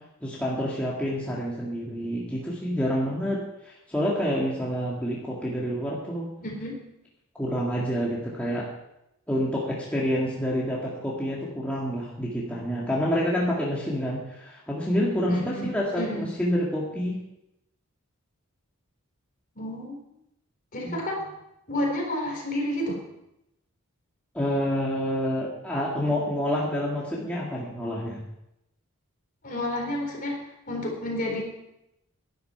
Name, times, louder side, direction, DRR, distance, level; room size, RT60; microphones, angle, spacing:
voice 1, 0.2-6.3 7.4-8.6 9.3-17.1 20.8-20.9 24.3-28.2, equal, 5° left, -6 dB, 1.9 m, -28 dB
voice 2, 6.4-6.8 15.3-16.3 19.6-20.0 20.7-21.2 21.7-23.0 26.1-26.2 29.4-31.4, left 1 dB, 40° left, 0 dB, 4.0 m, -30 dB
11.5 x 11.0 x 5.7 m, 0.85 s
head